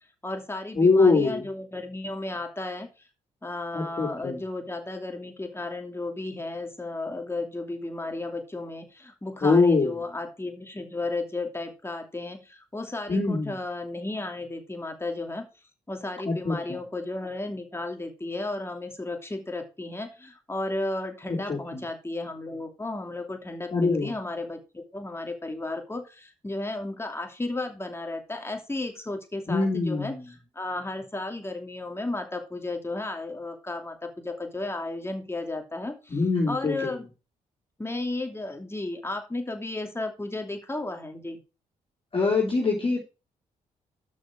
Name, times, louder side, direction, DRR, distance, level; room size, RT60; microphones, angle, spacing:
voice 1, 0.2-2.9 3.4-15.5 15.9-30.1 30.5-36.2 36.5-37.1 37.8-41.4, left 2 dB, 15° left, 4 dB, 2.8 m, -34 dB
voice 2, 0.7-1.4 3.7-4.4 9.4-9.9 13.1-13.5 16.2-16.8 21.3-21.8 23.7-24.1 29.5-30.2 36.1-36.9 42.1-43.0, left 3 dB, 40° left, -4 dB, 3.4 m, -23 dB
7.4 x 6.4 x 6.2 m, 0.31 s
supercardioid pair, 65°, 15 cm